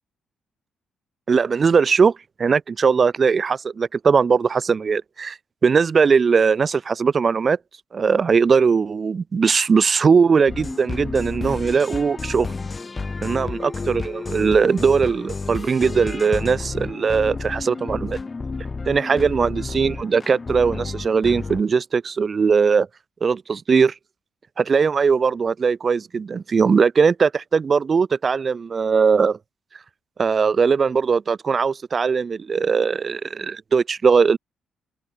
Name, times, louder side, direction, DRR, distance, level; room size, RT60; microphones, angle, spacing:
voice 1, 1.3-7.6 7.9-12.5 13.2-18.2 18.9-22.9 23.2-23.9 24.6-29.4 30.2-34.4, right 5 dB, 40° right, 0.4 m, -19 dB
sound 1, 10.5-21.6, left 4 dB, 30° left, 0.5 m, -31 dB
open air
cardioid pair, 90°, 0 cm